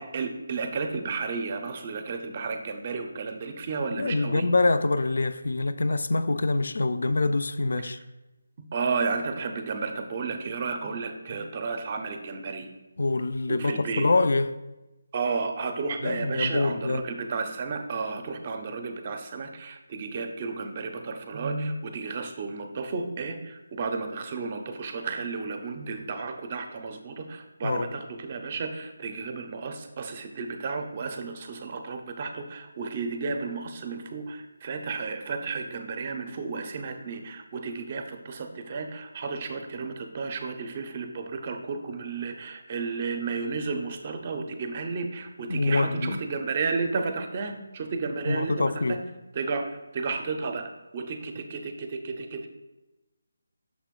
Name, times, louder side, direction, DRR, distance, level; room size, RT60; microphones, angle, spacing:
voice 1, 0.0-4.5 8.7-12.7 13.5-14.1 15.1-48.7 49.4-52.5, right 4 dB, 30° right, 6 dB, 0.5 m, -32 dB
voice 2, 4.0-8.0 13.0-14.5 16.0-17.1 27.6-27.9 45.5-46.2 48.2-49.0, left 2 dB, 65° left, 12 dB, 0.3 m, -25 dB
6.2 x 3.0 x 5.1 m, 1.1 s
figure-of-eight pair, 170°, 0 cm